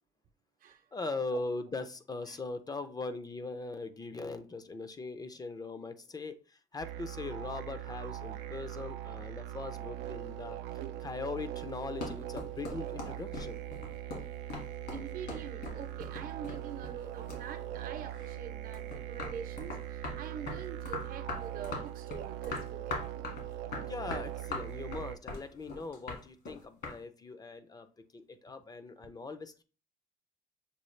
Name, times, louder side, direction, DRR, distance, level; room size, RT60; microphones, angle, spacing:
voice 1, 0.9-13.6 23.9-29.6, left 3 dB, 20° left, 0.5 m, -40 dB
sound 1, 6.8-25.2, right 12 dB, 90° right, 0.4 m, -41 dB
sound 2, 11.7-17.0 17.3-18.4 18.7-27.0, left 3 dB, 70° left, 1.7 m, -41 dB
voice 2, 14.9-23.0, right 7 dB, 55° right, 0.7 m, -45 dB
6.7 x 2.3 x 3.1 m
cardioid pair, 110°, 17 cm